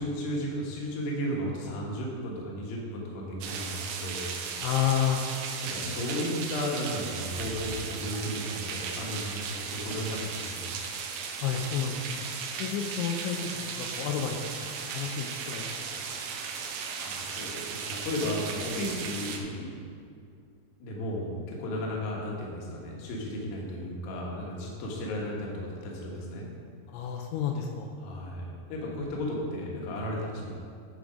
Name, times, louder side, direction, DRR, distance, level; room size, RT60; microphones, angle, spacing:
voice 1, 0.0-4.5 5.6-10.7 16.7-19.7 20.8-26.5 28.0-30.5, equal, 65° left, -2 dB, 2.7 m, -34 dB
sound 1, 3.4-19.4, right 6 dB, 85° right, 2.9 m, -36 dB
voice 2, 4.6-5.3 11.4-12.2 12.6-15.7 26.9-27.9, left 8 dB, 85° left, 2 dB, 2.9 m, -30 dB
10.5 x 5.3 x 5.0 m, 2.3 s
omnidirectional pair, 5.4 m